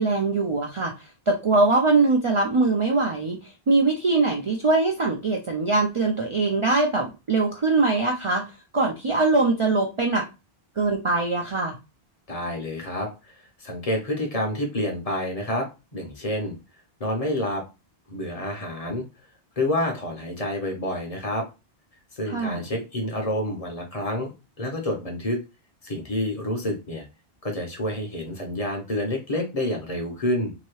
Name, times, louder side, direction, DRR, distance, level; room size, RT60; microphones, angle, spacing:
voice 1, 0.0-8.4 8.7-10.2 10.8-11.8 22.2-22.6, right 3 dB, 45° right, 1 dB, 0.4 m, -22 dB
voice 2, 12.3-13.1 13.6-16.5 17.0-17.6 18.1-19.0 19.6-21.4 22.1-24.3 24.6-25.4 25.8-27.1 27.4-30.5, left 1 dB, 40° left, 1 dB, 0.8 m, -28 dB
2.8 x 2.7 x 3.0 m, 0.28 s
omnidirectional pair, 1.0 m